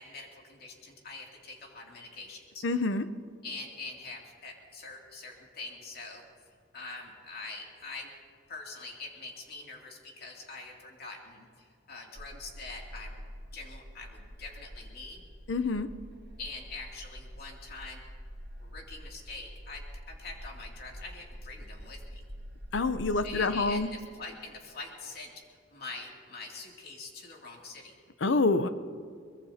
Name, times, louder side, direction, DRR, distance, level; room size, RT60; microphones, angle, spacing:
voice 1, 0.0-2.7 3.4-6.2 6.7-8.1 8.5-13.2 13.5-15.2 16.4-18.0 18.6-22.2 23.2-25.4 25.7-27.9, left 3 dB, 55° left, -1 dB, 2.7 m, -44 dB
voice 2, 2.6-3.0 15.5-15.9 22.7-23.9 28.2-28.7, left 3 dB, 85° left, 11 dB, 0.7 m, -27 dB
sound 1, 12.1-23.7, equal, 60° right, 1.4 m, -46 dB
23.5 x 21.5 x 2.9 m, 2.2 s
head